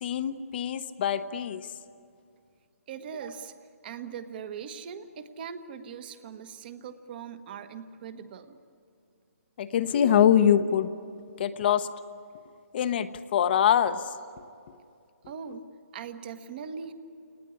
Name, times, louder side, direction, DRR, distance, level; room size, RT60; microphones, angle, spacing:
voice 1, 0.0-1.7 9.6-10.9 11.4-11.9 12.7-14.0, left 9 dB, 40° left, 10 dB, 0.9 m, -24 dB
voice 2, 2.9-8.6 15.2-16.9, right 7 dB, 35° right, 10 dB, 1.4 m, -41 dB
29.5 x 19.5 x 9.8 m, 2.4 s
hypercardioid pair, 155°, 8 cm